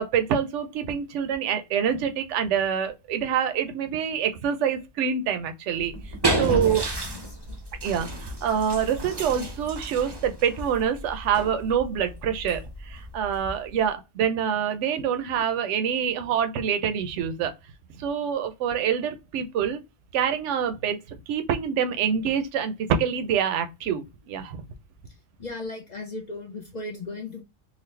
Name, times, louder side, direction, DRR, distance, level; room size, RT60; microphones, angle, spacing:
voice 1, 0.0-6.8 7.8-17.5 17.9-19.8 20.1-24.6, right 8 dB, 70° right, 0.9 m, -26 dB
sound 1, 5.8-13.9, right 2 dB, 25° right, 0.6 m, -32 dB
voice 2, 6.3-6.8 7.1-7.6 25.4-27.4, left 3 dB, 40° left, 0.7 m, -37 dB
4.0 x 2.3 x 3.2 m
omnidirectional pair, 1.3 m